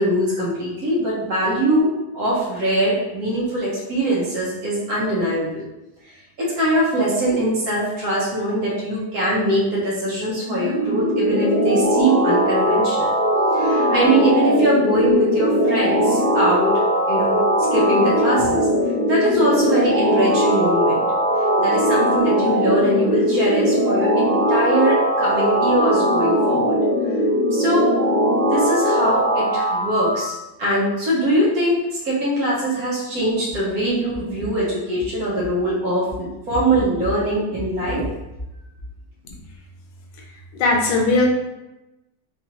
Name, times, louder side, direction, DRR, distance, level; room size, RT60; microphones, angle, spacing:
voice 1, 0.0-5.6 6.4-13.1 13.5-16.7 17.1-17.4 17.7-18.7 19.1-21.0 21.6-26.8 27.5-27.9 28.4-31.8 32.0-38.1, right 1 dB, 60° right, -6 dB, 1.2 m, -22 dB
sound 1, 10.3-30.2, equal, 25° right, 1.3 m, -19 dB
voice 2, 40.5-41.3, left 2 dB, 80° left, 0 dB, 1.3 m, -18 dB
4.0 x 2.4 x 2.9 m, 0.97 s
omnidirectional pair, 2.0 m